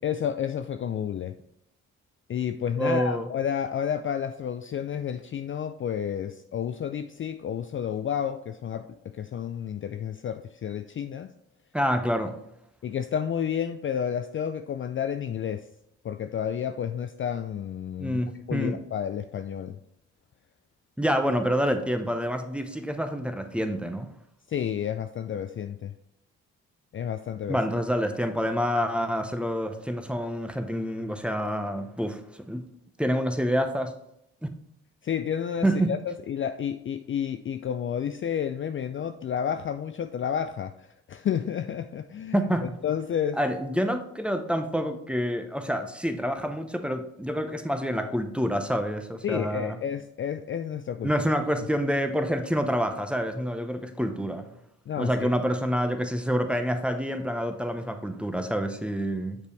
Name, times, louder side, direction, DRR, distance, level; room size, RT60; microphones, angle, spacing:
voice 1, 0.0-1.3 2.3-8.9 9.1-11.3 12.8-15.7 16.0-18.2 18.5-19.8 24.5-25.9 26.9-27.6 35.0-42.4 42.8-43.4 49.2-51.1 54.9-55.3, left 8 dB, 40° left, 0.4 m, -30 dB
voice 2, 2.8-3.3 11.7-12.3 18.0-18.8 21.0-24.1 27.5-32.6 33.0-33.9 34.4-34.5 35.6-35.9 42.3-42.8 43.4-49.8 51.0-54.5 55.0-59.4, equal, 5° right, 0.9 m, -27 dB
6.5 x 5.1 x 3.3 m
hypercardioid pair, 45°, 33 cm